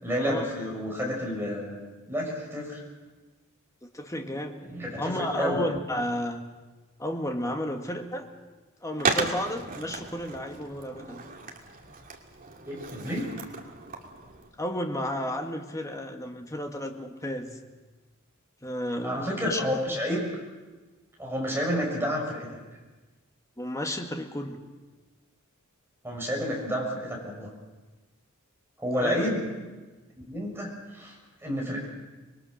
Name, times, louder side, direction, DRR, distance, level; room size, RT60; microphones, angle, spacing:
voice 1, 0.0-2.8 4.7-5.6 12.7-13.3 19.0-20.3 21.2-22.5 26.0-27.5 28.8-29.4 30.3-31.1 31.4-31.9, equal, 10° right, -2 dB, 6.5 m, -30 dB
voice 2, 3.9-4.6 4.9-6.4 7.0-8.3 8.8-11.2 14.6-17.6 18.6-19.6 19.9-20.0 23.6-24.6 28.9-29.3, equal, 15° left, 3 dB, 1.9 m, -32 dB
Skateboard, 9.0-14.5, right 4 dB, 45° right, 2.4 m, -34 dB
26.0 x 21.0 x 6.5 m, 1.2 s
head